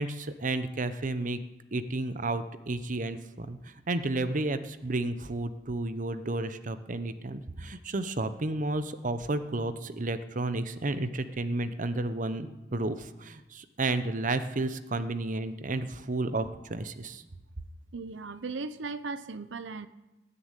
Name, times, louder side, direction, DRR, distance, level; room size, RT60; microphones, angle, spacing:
voice 1, 0.0-1.4 1.7-17.2, right 2 dB, 45° right, 11 dB, 0.8 m, -32 dB
voice 2, 17.9-19.9, right 4 dB, 90° right, 13 dB, 0.7 m, -37 dB
19.5 x 7.0 x 9.0 m, 1.0 s
head